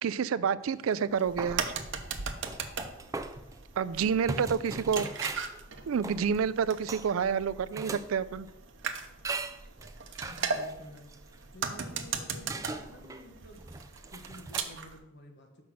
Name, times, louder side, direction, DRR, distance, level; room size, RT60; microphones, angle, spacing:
voice 1, 0.0-1.6 3.8-5.1 5.9-8.5, right 6 dB, 80° right, 0.4 m, -28 dB
sound 1, 0.7-1.1 1.4-8.1 8.5-8.6 9.2-12.1 12.5-14.6, right 3 dB, 15° right, 0.4 m, -40 dB
sound 2, 1.1-15.0, right 5 dB, 60° right, 0.8 m, -39 dB
voice 2, 4.1-4.8 10.0-15.6, equal, 60° left, 1.3 m, -51 dB
6.0 x 5.4 x 6.3 m
head